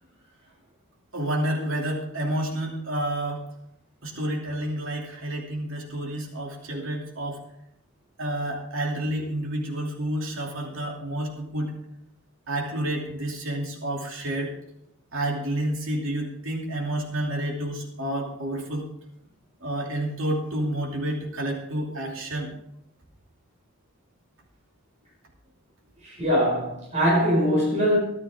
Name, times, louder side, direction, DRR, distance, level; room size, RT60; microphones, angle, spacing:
voice 1, 1.1-3.4 4.0-7.4 8.2-11.7 12.5-14.5 15.1-18.8 19.6-22.5, right 1 dB, 65° right, 0 dB, 2.9 m, -29 dB
voice 2, 26.0-28.0, equal, 30° right, -4 dB, 5.2 m, -22 dB
14.0 x 12.0 x 3.6 m, 0.78 s
head